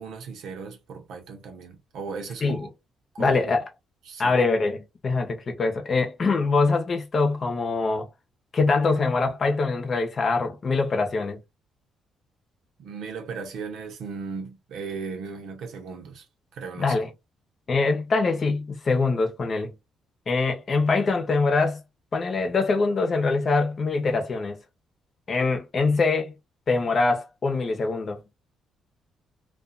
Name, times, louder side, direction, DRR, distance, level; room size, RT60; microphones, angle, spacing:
voice 1, 0.0-2.7 3.1-3.6 4.1-4.4 12.8-16.3 16.5-17.1, right 5 dB, 80° right, 0.8 m, -37 dB
voice 2, 3.2-3.6 4.2-8.1 8.5-11.4 16.8-17.1 17.7-19.7 20.3-21.8 22.1-24.6 25.3-26.3 26.7-28.2, left 3 dB, 45° left, 0.8 m, -23 dB
2.5 x 2.4 x 2.5 m
cardioid pair, 90°, 0 cm